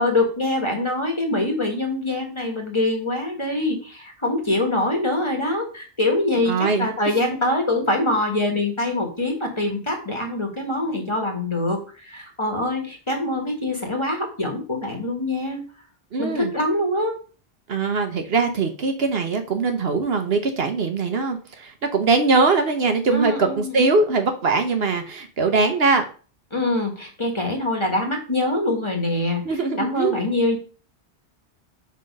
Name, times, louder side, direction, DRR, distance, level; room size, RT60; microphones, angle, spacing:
voice 1, 0.0-15.6 16.2-17.2 23.1-23.8 26.5-29.4 29.8-30.6, left 2 dB, 25° left, 2 dB, 1.6 m, -24 dB
voice 2, 6.5-7.1 16.1-16.5 17.7-26.0 29.4-30.2, right 4 dB, 60° right, 6 dB, 1.1 m, -21 dB
5.7 x 4.4 x 5.2 m, 0.38 s
omnidirectional pair, 1.2 m